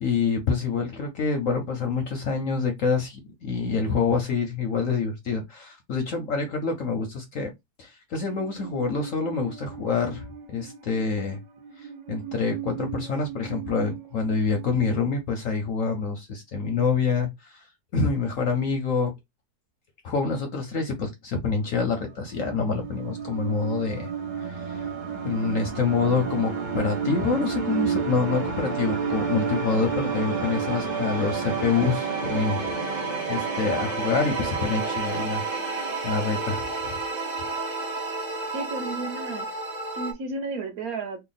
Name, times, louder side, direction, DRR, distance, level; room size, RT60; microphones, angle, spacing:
voice 1, 0.0-7.5 7.8-11.4 11.8-17.6 17.9-19.1 20.0-24.1 24.4-24.9 25.2-32.6 32.9-35.4 35.7-36.7, left 5 dB, 65° left, 0.8 m, -27 dB
Musical instrument, 8.1-15.0, right 9 dB, 75° right, 1.4 m, -40 dB
sound 1, 21.8-40.1, right 5 dB, 40° right, 0.6 m, -30 dB
voice 2, 38.5-39.5 40.0-41.2, right 3 dB, 55° right, 1.3 m, -32 dB
3.4 x 2.2 x 3.9 m
omnidirectional pair, 2.0 m